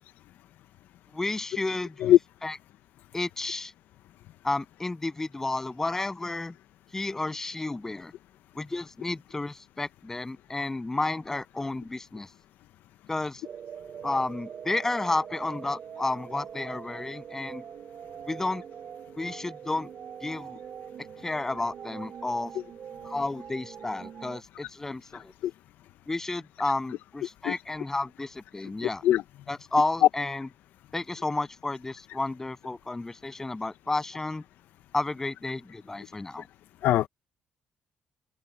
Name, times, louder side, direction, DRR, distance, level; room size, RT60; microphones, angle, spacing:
voice 1, 1.1-2.2 2.4-2.5 3.1-3.7 4.4-6.5 6.9-8.1 8.6-12.3 13.1-13.4 14.0-17.6 18.3-18.6 19.2-19.9 20.2-20.6 21.2-22.5 23.0-25.3 26.1-29.0 29.5-30.5 30.9-34.4 34.9-36.5, left 2 dB, 15° left, 7.3 m, -31 dB
sound 1, 13.4-24.4, right 8 dB, 50° right, 4.8 m, -43 dB
voice 2, 28.8-29.2 36.8-37.1, left 12 dB, 80° left, 0.6 m, -21 dB
open air
cardioid pair, 150°, 3 cm